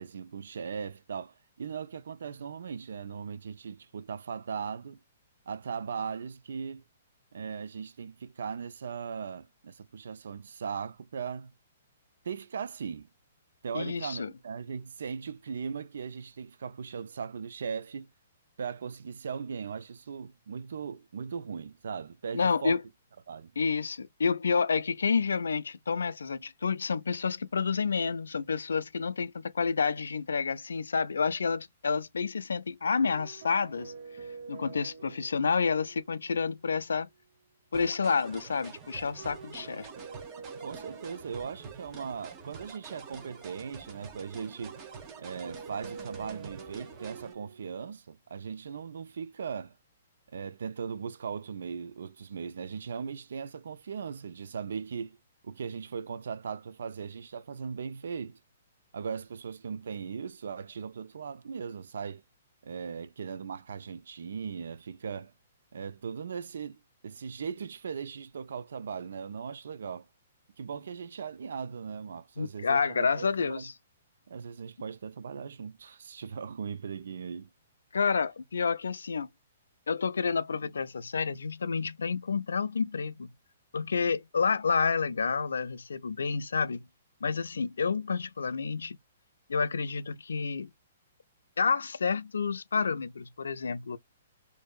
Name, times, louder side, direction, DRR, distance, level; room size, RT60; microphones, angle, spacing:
voice 1, 0.0-5.0 5.5-6.8 7.3-11.5 12.2-13.1 13.6-18.1 18.6-22.8 23.3-23.5 40.6-44.8 45.2-49.8 50.3-55.2 55.4-58.4 58.9-62.2 62.6-65.3 65.7-70.1 70.6-73.7 74.3-77.5, right 6 dB, 75° right, 0.3 m, -38 dB
voice 2, 13.7-14.3 22.3-22.8 23.6-33.9 34.5-37.1 37.7-39.9 72.4-73.7 77.9-79.3 79.9-83.3 83.7-86.8 87.2-89.0 89.5-90.7 91.6-94.0, left 5 dB, 85° left, 0.3 m, -29 dB
sound 1, 33.0-36.6 36.9-37.0 39.2-42.5 44.6-47.8, right 5 dB, 60° right, 0.8 m, -47 dB
sound 2, 37.7-47.3, right 5 dB, 30° right, 1.0 m, -47 dB
2.6 x 2.5 x 2.2 m
hypercardioid pair, 135°, 0 cm